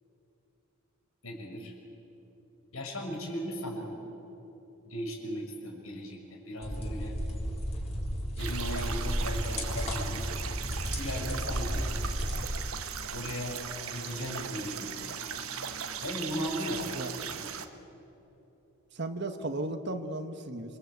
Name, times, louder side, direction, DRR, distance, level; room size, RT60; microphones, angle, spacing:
voice 1, 1.2-1.7 2.7-4.0 4.8-7.1 8.4-10.3 10.9-11.9 13.1-15.4 16.0-17.5, equal, 90° left, 1 dB, 5.9 m, -37 dB
sound 1, 6.6-12.4, equal, 30° left, 3.6 m, -33 dB
sound 2, 8.4-17.7, right 7 dB, 90° right, 1.3 m, -38 dB
voice 2, 18.9-20.8, right 2 dB, 55° right, 7 dB, 1.4 m, -35 dB
27.5 x 23.5 x 8.3 m, 2.9 s
head